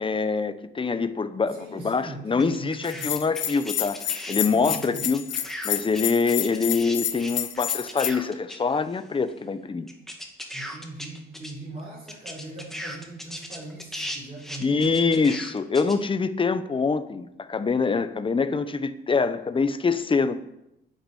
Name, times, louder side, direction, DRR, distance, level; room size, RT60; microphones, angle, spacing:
voice 1, 0.0-5.2 5.6-9.9 14.6-20.3, left 4 dB, 25° left, 0.9 m, -25 dB
voice 2, 1.5-3.2 4.4-5.1 10.5-15.0, right 2 dB, 30° right, 5.3 m, -40 dB
sound 1, 2.4-4.4 4.6-9.0 9.3-9.4 9.9-11.5 11.8-11.9 12.1-16.0, equal, ahead, 2.3 m, -38 dB
Bell, 2.9-8.1, left 11 dB, 70° left, 1.0 m, -29 dB
9.7 x 8.3 x 8.5 m
cardioid pair, 90°, 20 cm